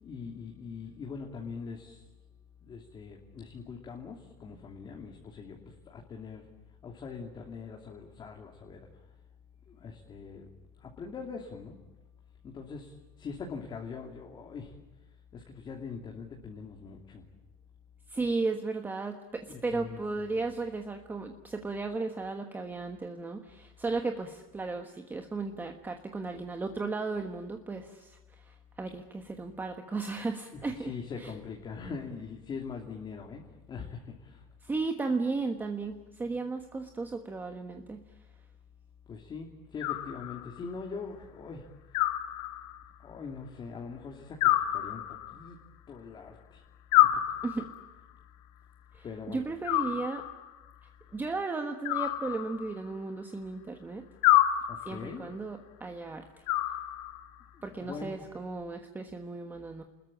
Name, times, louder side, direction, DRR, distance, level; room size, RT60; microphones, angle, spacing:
voice 1, 0.0-2.0 2.6-6.5 6.8-8.9 9.7-10.5 10.8-11.8 12.4-14.7 15.3-17.2 19.5-20.3 30.5-33.4 33.7-34.4 39.1-41.6 43.0-45.6 45.9-46.6 47.0-47.2 49.0-49.4 54.7-55.3 57.5-58.2, left 5 dB, 25° left, 1 dB, 2.8 m, -42 dB
voice 2, 18.1-30.9 31.2-31.3 34.6-38.0 47.4-47.7 48.9-50.3 51.1-54.1 54.8-56.3 57.6-59.8, right 3 dB, 10° right, 6 dB, 1.3 m, -35 dB
Animal, 39.8-40.7 41.9-42.9 44.4-45.5 46.9-47.9 49.6-50.6 51.8-52.9 54.2-55.1 56.5-57.4, left 14 dB, 70° left, 2.2 m, -28 dB
29.5 x 21.0 x 8.7 m, 1.1 s
supercardioid pair, 160°, 19 cm